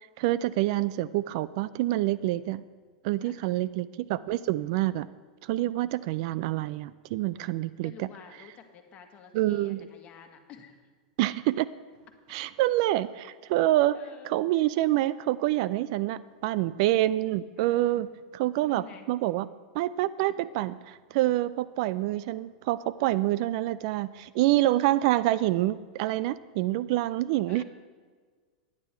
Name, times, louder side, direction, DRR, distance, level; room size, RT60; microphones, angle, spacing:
voice 1, 0.2-2.7 3.0-5.1 5.4-8.1 9.3-9.9 11.2-11.7 12.3-14.0 14.3-18.1 18.3-19.5 19.7-27.6, right 15 dB, 55° right, 17 dB, 0.3 m, -27 dB
voice 2, 7.8-10.9 13.9-14.3 16.1-16.2 17.6-18.1 18.6-19.1 27.5-27.6, left 8 dB, 35° left, 5 dB, 1.5 m, -50 dB
11.0 x 9.7 x 4.4 m, 1.5 s
hypercardioid pair, 110°, 4 cm